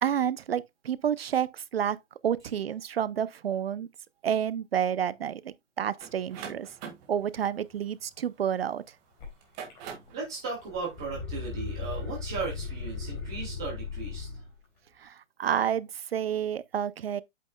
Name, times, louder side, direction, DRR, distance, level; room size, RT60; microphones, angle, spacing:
voice 1, 0.0-2.0 2.2-3.9 4.2-6.7 7.1-8.8 15.0-17.2, right 9 dB, 50° right, 0.6 m, -29 dB
sound 1, 6.0-8.7 9.3-10.2, right 7 dB, 20° right, 1.8 m, -43 dB
sound 2, 9.2-9.3 9.7-10.2 10.5-14.5, left 5 dB, 25° left, 4.0 m, -37 dB
voice 2, 10.1-14.3, right 4 dB, 5° right, 0.4 m, -36 dB
8.3 x 7.6 x 2.2 m
hypercardioid pair, 160°, 37 cm